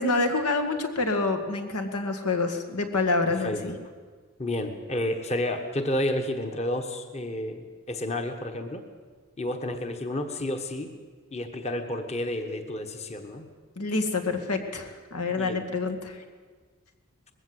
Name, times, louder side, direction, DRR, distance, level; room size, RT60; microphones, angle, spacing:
voice 1, 0.0-3.8 13.8-16.2, left 3 dB, 85° left, 6 dB, 2.1 m, -27 dB
voice 2, 3.4-3.8 4.4-8.8 9.4-10.9 11.3-13.4 15.4-15.6, left 1 dB, 30° left, 6 dB, 1.3 m, -31 dB
20.5 x 16.0 x 8.0 m, 1.5 s
head